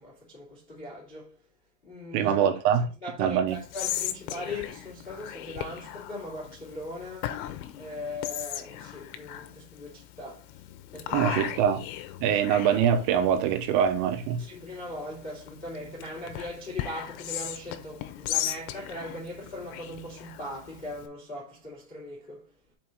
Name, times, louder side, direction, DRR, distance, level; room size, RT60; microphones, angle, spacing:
voice 1, 0.0-1.4 1.8-2.6 3.0-7.4 7.7-11.6 12.2-12.4 14.4-22.7, left 1 dB, 40° left, 0.7 m, -40 dB
voice 2, 2.1-2.9 3.2-3.6 11.1-11.8 12.2-14.4, right 8 dB, 90° right, 3.5 m, -24 dB
Whispering, 3.5-21.1, left 12 dB, 80° left, 2.8 m, -38 dB
7.5 x 4.6 x 3.9 m
omnidirectional pair, 5.8 m